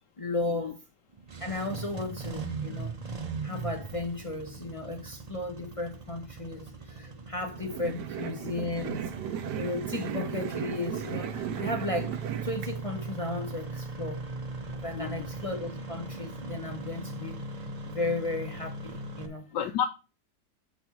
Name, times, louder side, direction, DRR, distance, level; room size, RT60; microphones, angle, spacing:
voice 1, 0.2-0.8 1.4-2.9 3.4-12.2 12.4-14.2 14.7-17.4 17.9-19.5, left 2 dB, 45° left, 0.4 m, -35 dB
Engine starting, 1.1-19.3, right 3 dB, 35° right, 0.6 m, -39 dB
sound 1, 7.5-12.7, right 9 dB, 75° right, 1.2 m, -36 dB
voice 2, 14.9-15.3 19.5-19.9, left 8 dB, 80° left, 1.3 m, -31 dB
6.9 x 4.1 x 5.9 m
omnidirectional pair, 1.9 m